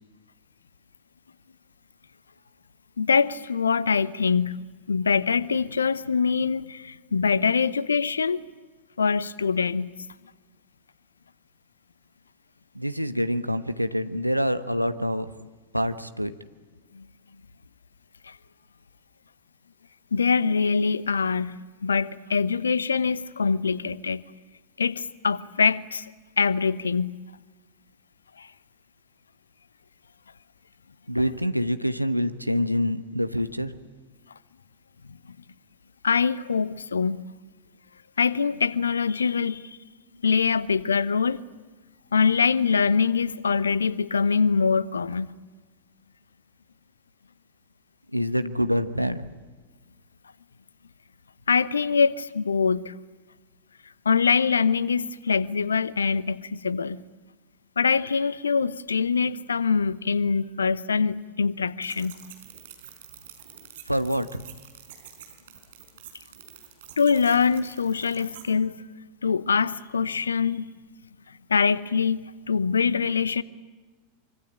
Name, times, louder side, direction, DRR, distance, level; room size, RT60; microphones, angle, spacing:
voice 1, 3.0-4.6 4.9-8.4 9.0-9.9 16.9-17.0 18.2-18.4 20.1-24.2 24.8-26.1 26.4-27.2 28.4-28.5 36.0-37.2 38.2-39.8 40.2-41.4 42.1-45.3 51.5-52.9 54.0-57.0 57.8-62.2 67.0-68.8 69.2-70.7 71.5-73.4, left 5 dB, 75° left, 0.9 m, -24 dB
voice 2, 12.7-15.3 15.7-16.3 31.1-33.7 48.1-49.3 63.9-64.4, equal, 90° right, 1.2 m, -26 dB
sound 1, 61.8-68.5, right 9 dB, 60° right, 5.0 m, -47 dB
25.0 x 25.0 x 8.9 m
figure-of-eight pair, 90°, 0 cm